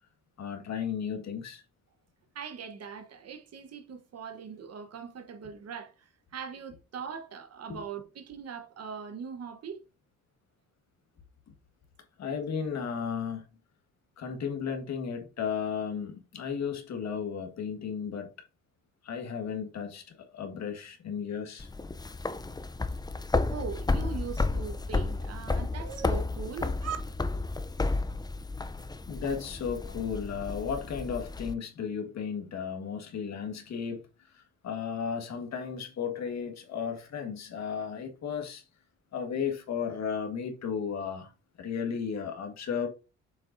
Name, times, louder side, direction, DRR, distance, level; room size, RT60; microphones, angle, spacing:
voice 1, 0.4-1.6 7.7-7.8 12.2-13.5 14.2-18.3 19.0-20.0 20.3-21.7 29.1-34.0 34.3-38.6 39.1-41.3 41.6-42.9, left 7 dB, 60° left, 1.8 m, -34 dB
voice 2, 2.3-9.8 23.4-27.0, right 6 dB, 55° right, 1.2 m, -40 dB
sound 1, 21.6-31.5, left 3 dB, 15° left, 0.5 m, -32 dB
7.3 x 5.3 x 2.7 m
cardioid pair, 90°, 30 cm